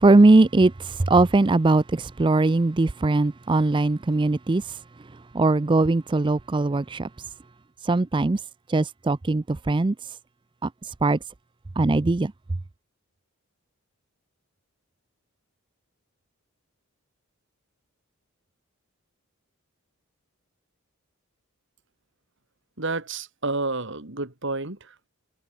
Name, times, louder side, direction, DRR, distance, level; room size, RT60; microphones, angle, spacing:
voice 1, 0.0-4.8 5.3-7.3 7.8-8.4 8.7-10.2 10.6-11.2 11.8-12.3, right 2 dB, 20° right, 0.4 m, -20 dB
voice 2, 22.8-24.8, right 3 dB, 60° right, 3.1 m, -29 dB
head